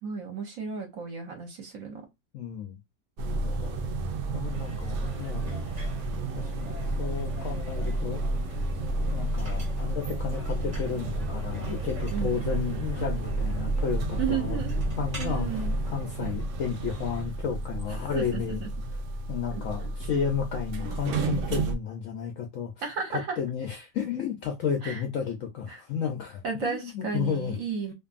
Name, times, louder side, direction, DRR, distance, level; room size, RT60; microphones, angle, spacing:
voice 1, 0.0-2.1 12.1-12.5 14.2-14.8 15.2-15.7 17.9-18.7 19.5-19.9 22.8-23.4 24.8-25.0 25.7-25.8 26.4-27.9, right 6 dB, 65° right, 1.0 m, -34 dB
voice 2, 2.3-2.8 3.3-3.9 4.3-5.6 6.3-8.3 9.1-14.6 15.0-18.6 19.3-22.7 23.4-27.6, left 7 dB, 70° left, 0.8 m, -32 dB
sound 1, 3.2-21.8, right 2 dB, 80° right, 0.7 m, -31 dB
sound 2, 4.5-17.2, right 1 dB, 35° right, 0.8 m, -46 dB
2.6 x 2.5 x 2.3 m
omnidirectional pair, 1.9 m